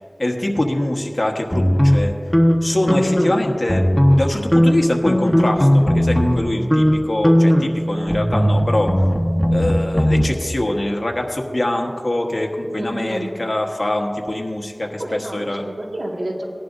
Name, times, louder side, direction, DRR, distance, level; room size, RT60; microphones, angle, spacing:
voice 1, 0.2-2.1 2.6-3.8 4.1-8.9 9.5-15.0 15.3-15.6, left 1 dB, 50° left, 1 dB, 1.3 m, -23 dB
sound 1, 1.5-3.4 3.6-4.3 4.5-6.4 6.7-6.9 7.2-10.2, equal, 15° left, 1.3 m, -17 dB
voice 2, 12.8-13.3 15.0-16.4, right 1 dB, 85° right, -2 dB, 2.0 m, -29 dB
18.0 x 11.0 x 2.7 m, 2.2 s
wide cardioid pair, 45°, 0 cm